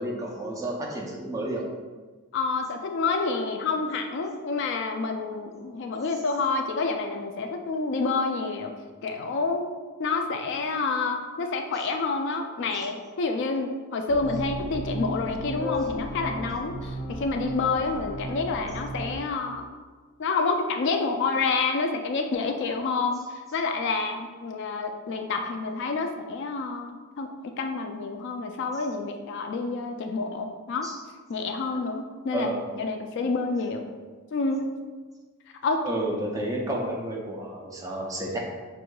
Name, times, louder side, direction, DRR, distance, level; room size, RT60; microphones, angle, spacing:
voice 1, 0.0-1.6 12.7-12.9 30.8-31.0 31.7-31.8 32.3-32.6 35.8-38.4, right 1 dB, 15° right, -2 dB, 0.5 m, -31 dB
voice 2, 2.3-8.7 9.0-9.7 10.0-19.7 20.2-23.2 23.5-27.3 27.6-30.9 31.3-33.8 34.3-34.7 35.6-35.8 36.4-36.5, left 4 dB, 55° left, 4 dB, 0.3 m, -28 dB
sound 1, 14.1-19.2, left 1 dB, 55° right, 1.2 m, -34 dB
6.1 x 2.6 x 2.2 m, 1.4 s
head